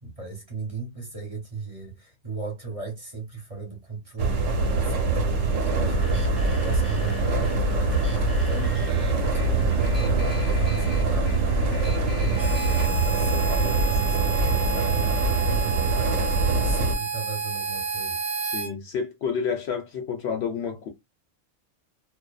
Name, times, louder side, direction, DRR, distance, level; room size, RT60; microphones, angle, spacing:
voice 1, 0.0-18.2, right 4 dB, 30° right, 0.9 m, -37 dB
sound 1, 4.2-17.0, right 3 dB, 75° right, 1.1 m, -24 dB
sound 2, 5.7-12.8, left 1 dB, ahead, 1.0 m, -38 dB
Harmonica, 12.4-18.7, right 5 dB, 55° right, 0.6 m, -30 dB
voice 2, 18.4-20.9, left 6 dB, 65° left, 0.8 m, -29 dB
2.5 x 2.2 x 2.2 m
omnidirectional pair, 1.3 m